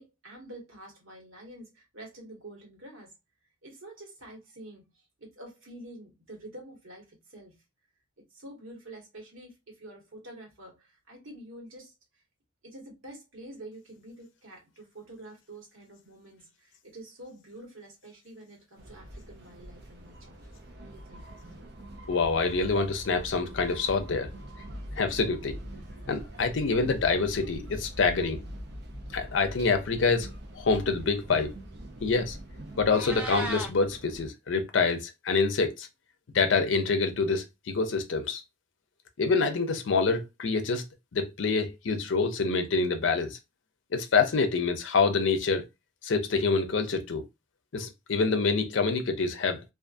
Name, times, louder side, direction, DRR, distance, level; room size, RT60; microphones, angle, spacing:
voice 1, 0.0-3.1 3.6-7.6 8.2-11.9 12.6-20.4 20.7-21.3, right 1 dB, 85° right, 1.3 m, -47 dB
sound 1, 18.8-34.3, equal, 55° right, 0.6 m, -43 dB
voice 2, 22.1-24.3 25.0-25.6 26.1-28.4 29.1-30.3 30.5-31.5 32.0-32.4 32.8-35.9 36.3-38.4 39.2-40.9 41.1-43.4 43.9-45.7 46.0-47.3 47.7-49.6, left 4 dB, 70° left, 0.5 m, -26 dB
Meow, 32.7-33.7, right 1 dB, 5° right, 0.4 m, -35 dB
2.4 x 2.4 x 2.4 m
head